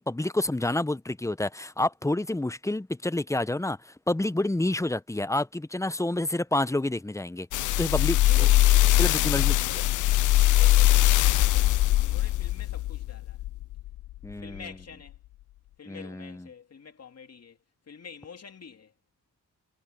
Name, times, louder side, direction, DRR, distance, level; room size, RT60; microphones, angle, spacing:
voice 1, 0.0-7.5 7.8-8.5 9.0-9.5 14.2-14.6 15.9-16.4, left 1 dB, 10° left, 0.9 m, -28 dB
sound 1, 7.5-14.0 14.6-14.7, left 15 dB, 65° left, 0.5 m, -21 dB
voice 2, 8.2-11.7 12.0-13.4 14.3-15.2 15.8-17.6 17.9-18.9, left 6 dB, 50° left, 2.9 m, -46 dB
cardioid pair, 60°, 33 cm